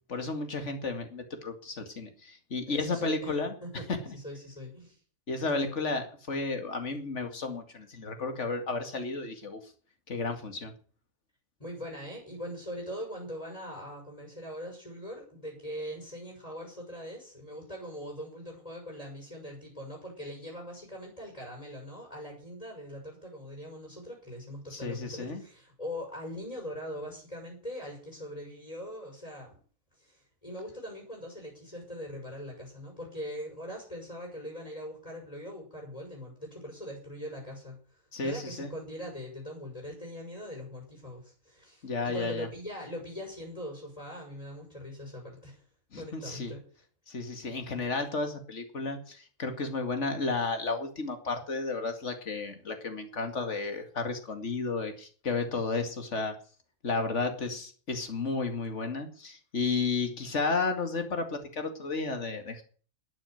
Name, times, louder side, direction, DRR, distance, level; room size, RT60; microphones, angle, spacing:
voice 1, 0.1-3.5 3.9-4.1 5.3-9.6 10.1-10.7 24.7-25.4 38.1-38.7 41.8-42.5 45.9-46.5 47.1-56.3 56.8-62.6, left 3 dB, 55° left, 6 dB, 2.6 m, -33 dB
voice 2, 2.7-3.3 3.6-3.9 4.1-5.0 5.4-5.7 11.6-29.6 30.0-45.6 46.0-46.6, equal, 25° left, 0 dB, 6.4 m, -41 dB
13.0 x 9.0 x 9.2 m, 0.43 s
omnidirectional pair, 1.5 m